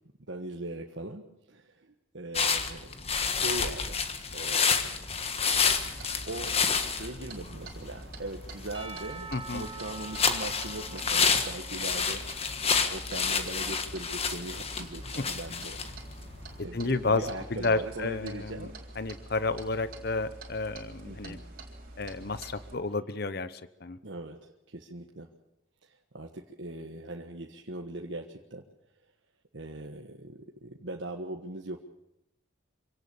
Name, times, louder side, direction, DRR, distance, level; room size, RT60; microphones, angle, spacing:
voice 1, 0.3-2.9 3.3-4.0 4.3-4.9 6.3-12.2 12.9-15.8 16.6-18.8 21.0-21.4 24.0-25.3 25.8-28.6 29.5-31.8, right 2 dB, 65° right, 2 dB, 1.4 m, -40 dB
sound 1, 2.3-16.6, left 5 dB, 30° left, 1.5 m, -30 dB
Clock, 5.5-22.7, right 2 dB, 45° right, 3.9 m, -46 dB
Percussion / Church bell, 8.7-12.9, right 4 dB, 25° right, 1.7 m, -46 dB
voice 2, 9.3-9.7 16.7-18.7 19.0-21.4 22.0-24.0, left 3 dB, 50° left, 14 dB, 0.9 m, -31 dB
26.0 x 18.0 x 7.1 m, 0.84 s
head